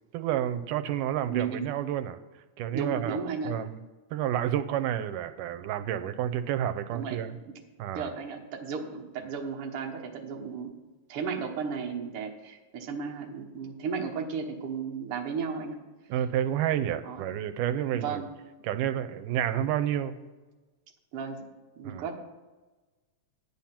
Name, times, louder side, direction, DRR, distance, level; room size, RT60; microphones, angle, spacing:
voice 1, 0.1-2.2 2.6-3.8 4.1-7.4 7.8-8.1 16.1-18.2 18.6-20.2 21.8-22.1, right 10 dB, 90° right, 10 dB, 2.2 m, -30 dB
voice 2, 1.3-1.6 2.7-3.5 6.9-7.2 7.5-7.6 8.0-10.7 11.1-15.8 17.0-17.4 18.0-18.3 21.1-21.5 21.8-22.1, right 5 dB, 55° right, 1 dB, 1.8 m, -34 dB
11.0 x 8.8 x 5.8 m, 1.2 s
omnidirectional pair, 3.7 m